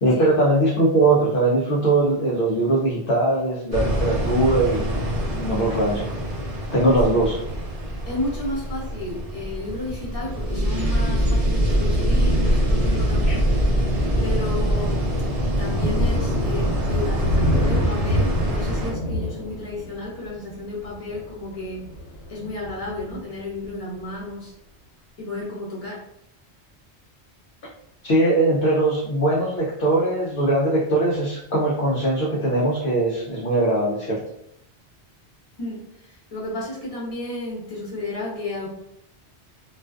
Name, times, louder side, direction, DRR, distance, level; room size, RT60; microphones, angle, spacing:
voice 1, 0.0-5.0 5.3-6.1 6.7-7.4 13.3-13.4 28.0-34.2, right 2 dB, 60° left, -4 dB, 0.6 m, -21 dB
sound 1, 3.7-18.9, equal, 40° right, 0.6 m, -24 dB
voice 2, 8.1-13.4 14.1-15.0 15.6-21.8 22.3-24.5 25.2-26.0 35.6-38.7, left 2 dB, 35° left, -5 dB, 0.9 m, -32 dB
Thunder, 13.4-24.0, left 1 dB, 80° left, 1.0 m, -28 dB
2.4 x 2.3 x 2.2 m, 0.78 s
omnidirectional pair, 1.1 m